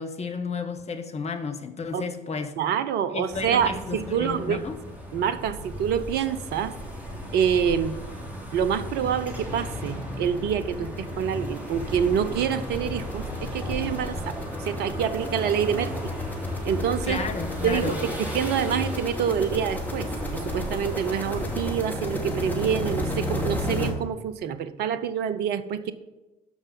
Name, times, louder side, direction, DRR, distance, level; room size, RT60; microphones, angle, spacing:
voice 1, 0.0-2.5 3.1-4.8 17.0-18.0, left 4 dB, 30° left, 6 dB, 1.3 m, -32 dB
voice 2, 2.6-4.6 5.1-6.8 7.3-8.0 8.5-16.1 16.6-17.2 17.6-25.9, right 8 dB, 55° right, 13 dB, 0.7 m, -27 dB
sound 1, 3.3-21.7, left 1 dB, 10° right, 3.1 m, -34 dB
sound 2, 8.5-8.6 8.9-9.1 9.3-23.9, left 1 dB, 10° left, 2.5 m, -34 dB
13.0 x 5.5 x 5.3 m, 1.1 s
figure-of-eight pair, 50°, 20 cm